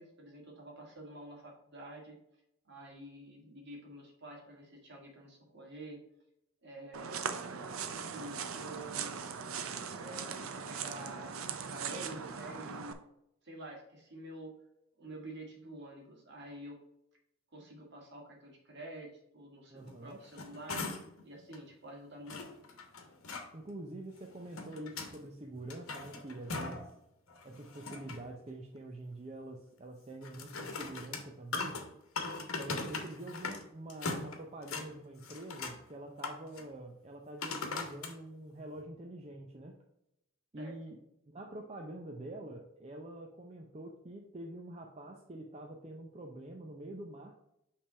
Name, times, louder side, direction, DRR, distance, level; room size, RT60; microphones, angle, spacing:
voice 1, 0.0-2.2 2.7-6.0 6.6-7.4 7.9-9.4 10.0-13.0 13.4-14.5 15.0-16.8 17.5-21.0 21.2-22.5 40.6-40.7, right 1 dB, 55° right, 0 dB, 1.8 m, -48 dB
sound 1, 6.9-12.9, right 6 dB, 75° right, 0.6 m, -40 dB
voice 2, 19.7-20.2 23.5-26.9 27.4-31.8 32.5-39.8 40.5-41.0 41.3-47.3, right 1 dB, 30° right, 1 dB, 0.6 m, -46 dB
sound 2, 20.1-21.2 21.5-21.6 22.3-23.5 24.2-25.2 25.6-26.9 27.3-28.3 30.2-33.6 33.9-34.9 35.2-35.8 36.2-36.6 37.4-38.1 38.8-38.9, left 4 dB, 80° left, 1.1 m, -40 dB
5.7 x 3.4 x 5.5 m, 0.83 s
head